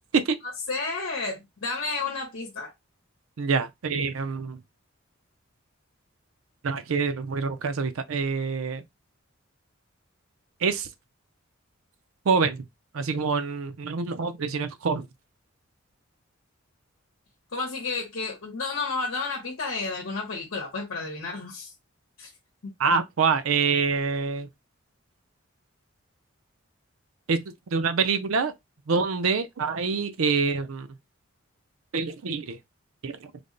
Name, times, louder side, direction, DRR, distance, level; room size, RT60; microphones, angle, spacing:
voice 1, 0.4-2.7 17.5-21.7 22.2-22.3 22.6-22.7, left 3 dB, 65° left, 0.9 m, -31 dB
voice 2, 3.4-4.6 6.6-8.8 10.6-10.9 12.3-12.6 12.9-15.1 22.8-24.5 27.3-27.4 27.7-28.5 28.9-30.9 31.9-32.6 33.0-33.3, right 5 dB, 75° right, 0.5 m, -26 dB
3.4 x 2.1 x 3.8 m
head